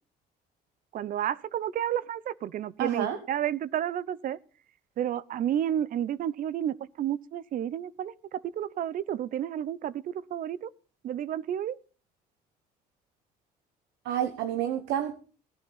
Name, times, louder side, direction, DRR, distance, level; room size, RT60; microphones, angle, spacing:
voice 1, 0.9-4.4 5.0-10.7 11.0-11.8, right 10 dB, 55° right, 0.7 m, -31 dB
voice 2, 2.8-3.2 14.0-15.2, right 10 dB, 85° right, 1.3 m, -29 dB
17.0 x 11.0 x 4.1 m
cardioid pair, 110°, 17 cm